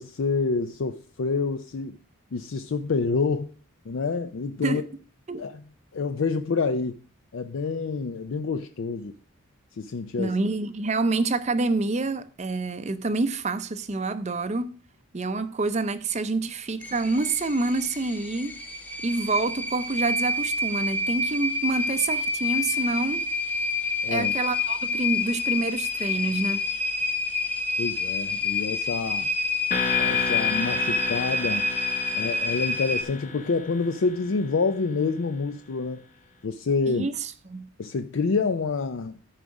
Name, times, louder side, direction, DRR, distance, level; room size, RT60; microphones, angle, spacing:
voice 1, 0.0-2.0 2.3-3.5 3.9-4.8 5.4-5.6 5.9-7.0 7.3-9.1 9.7-10.4 24.0-24.3 27.8-29.3 30.0-31.7 32.2-36.1 36.4-37.1 37.8-39.2, left 4 dB, 60° left, 0.4 m, -27 dB
voice 2, 10.2-14.7 15.1-18.6 19.0-23.3 24.1-26.6 36.9-37.7, right 3 dB, 30° right, 0.5 m, -27 dB
sound 1, 16.8-33.0, left 3 dB, 10° left, 0.7 m, -28 dB
sound 2, 29.7-34.6, left 4 dB, 35° left, 1.0 m, -32 dB
13.5 x 4.8 x 5.2 m
head